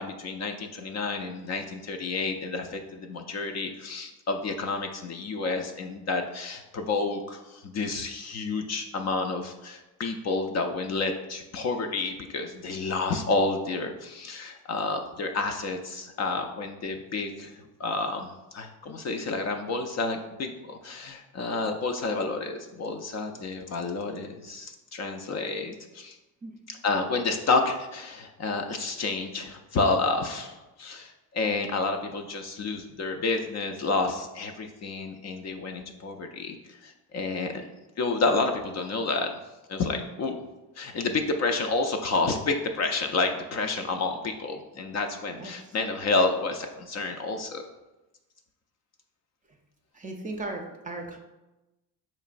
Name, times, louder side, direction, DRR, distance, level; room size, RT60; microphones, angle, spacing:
voice 1, 0.0-26.2 26.7-37.5 38.0-39.3 39.7-40.4 40.8-47.7, left 3 dB, 45° left, 5 dB, 0.4 m, -30 dB
voice 2, 45.3-45.7 49.9-51.2, right 2 dB, 20° right, 2 dB, 0.5 m, -37 dB
4.4 x 3.0 x 2.4 m, 1.0 s
cardioid pair, 90°, 39 cm